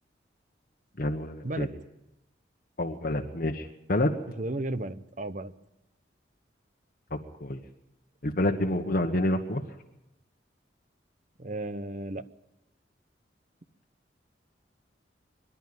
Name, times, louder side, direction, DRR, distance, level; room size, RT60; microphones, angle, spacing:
voice 1, 1.0-1.7 2.8-4.1 7.1-7.6 8.2-9.6, left 1 dB, 50° left, 2 dB, 1.3 m, -28 dB
voice 2, 4.4-5.5 11.4-12.2, right 2 dB, 45° right, 13 dB, 0.9 m, -34 dB
24.5 x 11.5 x 9.5 m, 0.89 s
head